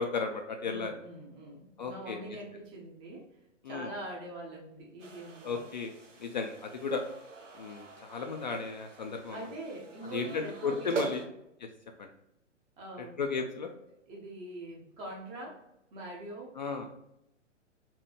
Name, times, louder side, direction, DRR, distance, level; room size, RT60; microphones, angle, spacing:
voice 1, 0.0-0.9 1.8-2.2 3.6-3.9 5.4-5.9 6.2-7.0 7.6-9.5 10.1-11.2 12.0-12.1 13.2-13.7 16.6-16.9, left 4 dB, 40° left, 4 dB, 0.4 m, -34 dB
voice 2, 0.6-3.3 3.7-5.6 9.3-11.3 12.8-13.4 13.8-15.6 15.9-16.6, right 1 dB, 15° right, -1 dB, 0.6 m, -44 dB
sound 1, 5.0-11.3, right 3 dB, 75° right, 0.9 m, -43 dB
4.3 x 2.6 x 3.1 m, 0.83 s
figure-of-eight pair, 125°, 37 cm